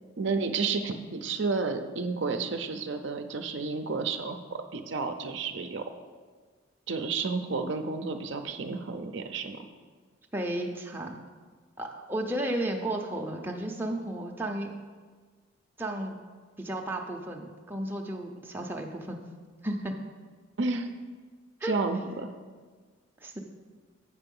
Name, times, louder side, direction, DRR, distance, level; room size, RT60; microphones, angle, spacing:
voice 1, 0.2-5.8 6.9-9.6 20.6-20.9 21.6-22.3, right 4 dB, 60° right, 6 dB, 0.6 m, -31 dB
voice 2, 10.3-11.2 11.8-14.7 15.8-16.2 16.6-19.2 19.6-19.9 21.6-21.7 22.0-22.1 23.2-23.4, right 1 dB, 10° right, 0 dB, 0.6 m, -33 dB
8.3 x 5.7 x 5.4 m, 1.5 s
head